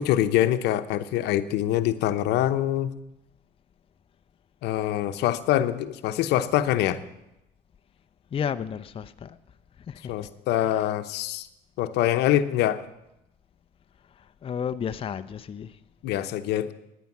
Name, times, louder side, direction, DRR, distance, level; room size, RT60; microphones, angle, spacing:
voice 1, 0.0-2.9 4.6-7.0 10.1-11.5 11.8-12.8 16.0-16.7, left 12 dB, 85° left, 0.8 m, -24 dB
voice 2, 8.3-9.4 9.9-10.1 10.6-10.8 14.2-15.8, left 7 dB, 35° left, 0.6 m, -32 dB
15.0 x 10.0 x 7.2 m
cardioid pair, 110°, 17 cm